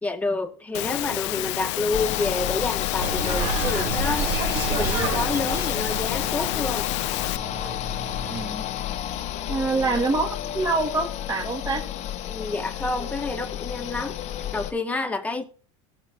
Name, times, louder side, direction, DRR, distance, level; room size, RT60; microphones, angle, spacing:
voice 1, 0.0-4.4 4.7-6.9 12.3-14.2 14.5-15.4, left 3 dB, 10° left, 1.9 m, -29 dB
Engine / Mechanisms, 0.7-7.4, left 19 dB, 75° left, 0.6 m, -30 dB
sound 1, 1.9-14.7, left 11 dB, 50° left, 1.2 m, -31 dB
sound 2, 3.0-8.5, right 5 dB, 70° right, 5.4 m, -30 dB
voice 2, 8.2-8.6 9.5-11.8, right 3 dB, 25° right, 2.8 m, -26 dB
18.0 x 7.4 x 2.5 m
supercardioid pair, 115°, 15 cm